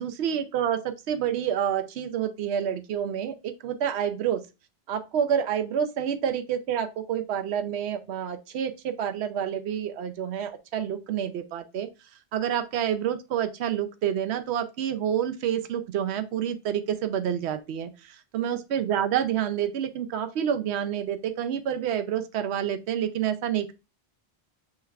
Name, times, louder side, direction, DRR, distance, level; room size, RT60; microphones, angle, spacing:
voice 1, 0.0-4.4 4.9-11.9 12.3-17.9 18.3-23.7, right 9 dB, 90° right, 0.9 m, -28 dB
6.6 x 3.2 x 2.3 m
omnidirectional pair, 1.1 m